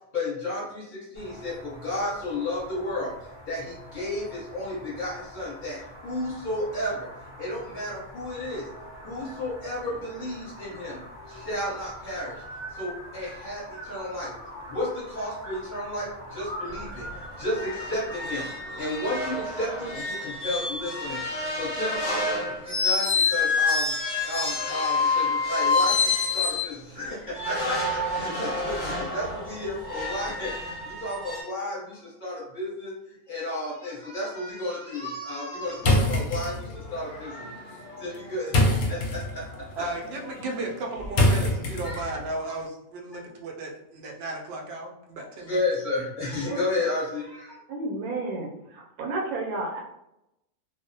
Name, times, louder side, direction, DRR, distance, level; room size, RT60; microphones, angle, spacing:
voice 1, 0.1-3.1 3.5-7.1 7.4-8.7 9.0-17.1 17.4-23.9 24.2-39.8 41.8-42.0 43.1-43.2 45.5-47.6, left 1 dB, 40° left, -7 dB, 0.9 m, -33 dB
sound 1, 1.1-19.9, equal, 15° right, 0.6 m, -43 dB
sound 2, 16.7-16.8 17.1-17.2 17.5-26.7 27.3-31.4, left 3 dB, 55° left, 0.5 m, -28 dB
sound 3, 35.8-42.3, left 1 dB, 70° left, 0.9 m, -27 dB
voice 2, 39.7-45.6, right 2 dB, 65° right, 0 dB, 0.6 m, -34 dB
voice 3, 47.7-49.8, right 2 dB, 80° right, -1 dB, 1.1 m, -31 dB
2.4 x 2.0 x 2.6 m, 0.84 s
omnidirectional pair, 1.5 m